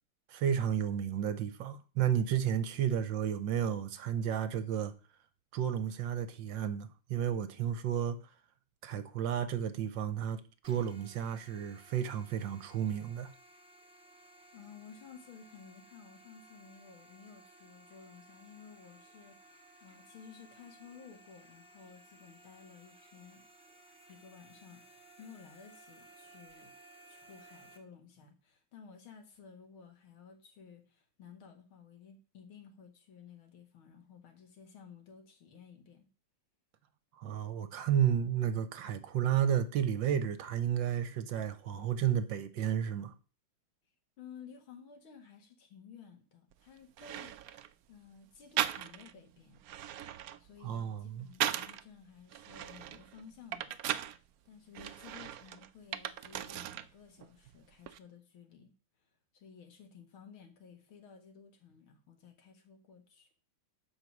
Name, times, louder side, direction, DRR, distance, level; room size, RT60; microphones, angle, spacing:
voice 1, 0.3-4.9 5.5-8.2 8.8-13.3 37.2-43.1 50.6-51.3, right 9 dB, 70° right, 1.4 m, -32 dB
sound 1, 10.6-27.8, right 1 dB, 5° right, 1.2 m, -59 dB
voice 2, 14.5-23.4 24.1-26.7 27.1-36.1 44.2-47.6 47.9-49.7 50.4-53.8 54.5-58.7 59.0-63.3, left 6 dB, 75° left, 2.5 m, -55 dB
sound 2, 46.5-46.6 47.0-47.7 48.6-49.2 49.6-51.8 52.3-54.2 54.7-56.9 57.2-58.0, right 11 dB, 85° right, 0.7 m, -38 dB
12.0 x 5.0 x 6.0 m
omnidirectional pair, 2.3 m